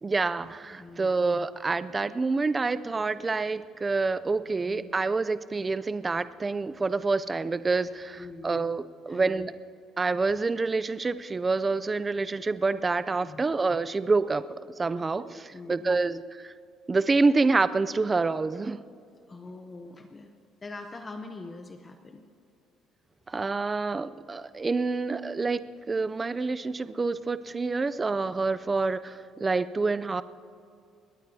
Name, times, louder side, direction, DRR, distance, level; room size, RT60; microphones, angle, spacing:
voice 1, 0.0-9.5 10.0-14.4 14.8-16.5 16.9-18.8 23.3-25.6 25.9-30.2, right 3 dB, 15° right, 15 dB, 0.3 m, -27 dB
voice 2, 0.8-1.1 4.7-4.9 8.2-8.7 9.1-9.5 13.2-13.4 15.3-16.0 19.3-20.3 20.6-22.2, left 3 dB, 20° left, 6 dB, 0.7 m, -43 dB
22.0 x 18.0 x 2.7 m, 2.5 s
cardioid pair, 170°, 0 cm